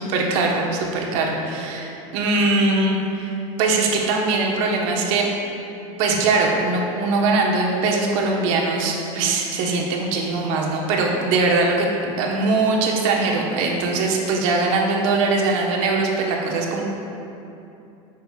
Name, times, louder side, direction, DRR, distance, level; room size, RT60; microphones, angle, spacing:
voice 1, 0.1-3.3 3.6-5.3 6.0-16.8, right 3 dB, 70° right, 0 dB, 1.2 m, -21 dB
9.4 x 6.4 x 2.4 m, 2.8 s
supercardioid pair, 115°, 18 cm